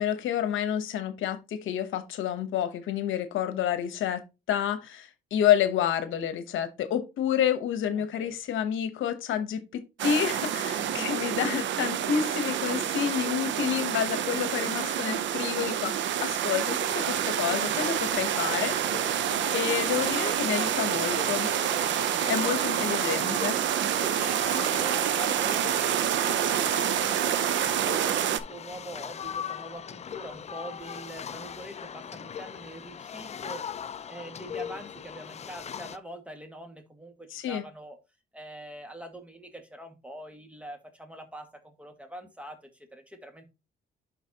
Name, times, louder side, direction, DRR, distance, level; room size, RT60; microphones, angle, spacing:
voice 1, 0.0-4.2 4.5-19.3 19.5-21.5 22.3-23.6 37.3-37.6, left 9 dB, 80° left, 1.0 m, -29 dB
voice 2, 7.9-8.4 10.7-11.4 22.4-22.8 23.7-27.4 27.8-33.6 34.1-38.0 38.3-43.5, right 1 dB, 5° right, 1.8 m, -44 dB
sound 1, 10.0-28.4, right 10 dB, 70° right, 0.6 m, -28 dB
sound 2, 16.9-36.0, left 8 dB, 35° left, 0.4 m, -40 dB
11.0 x 4.1 x 2.9 m
cardioid pair, 90°, 20 cm